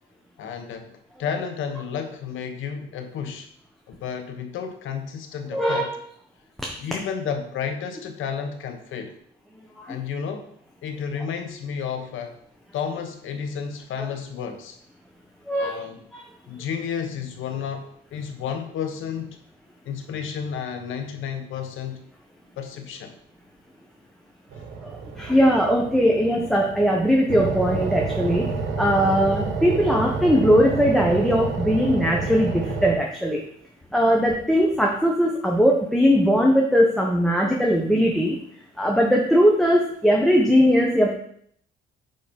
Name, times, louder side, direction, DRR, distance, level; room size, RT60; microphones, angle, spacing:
voice 1, 0.4-3.5 3.9-5.9 6.8-9.2 9.9-10.5 10.8-12.4 12.7-14.8 15.5-16.0 16.5-19.4 19.8-22.0 22.6-23.1, left 7 dB, 80° left, 6 dB, 1.2 m, -32 dB
voice 2, 5.5-5.9 6.6-6.7 9.8-10.0 15.5-15.8 16.1-16.2 25.2-33.4 33.9-38.4 38.8-41.1, equal, ahead, -1 dB, 1.3 m, -20 dB
sound 1, 24.5-32.9, right 4 dB, 70° right, 1.5 m, -29 dB
9.3 x 4.2 x 5.3 m, 0.65 s
cardioid pair, 90°, 20 cm